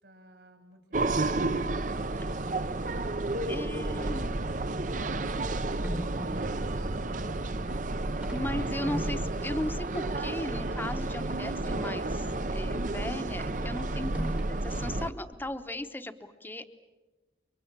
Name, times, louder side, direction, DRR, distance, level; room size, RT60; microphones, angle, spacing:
voice 1, 0.0-1.5 2.9-5.4 5.9-8.3, right 1 dB, 70° right, 5 dB, 4.8 m, -55 dB
sound 1, 0.9-15.1, right 2 dB, 45° right, 0.8 m, -31 dB
sound 2, 3.3-3.5 4.2-4.3 5.8-14.5, equal, 10° right, 1.1 m, -44 dB
voice 2, 3.5-4.3 8.3-12.3 12.5-16.6, left 1 dB, 10° left, 9 dB, 1.0 m, -37 dB
29.5 x 24.5 x 7.4 m, 1.2 s
head